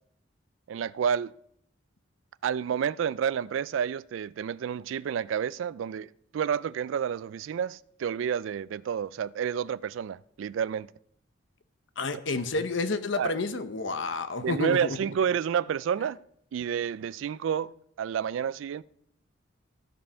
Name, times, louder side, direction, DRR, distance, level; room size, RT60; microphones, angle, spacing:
voice 1, 0.7-1.3 2.4-6.1 6.3-10.9 13.2-13.3 14.4-16.2 16.5-18.8, right 8 dB, 75° right, 0.3 m, -30 dB
voice 2, 12.0-15.0, left 3 dB, 70° left, 0.8 m, -30 dB
14.5 x 5.4 x 5.6 m
head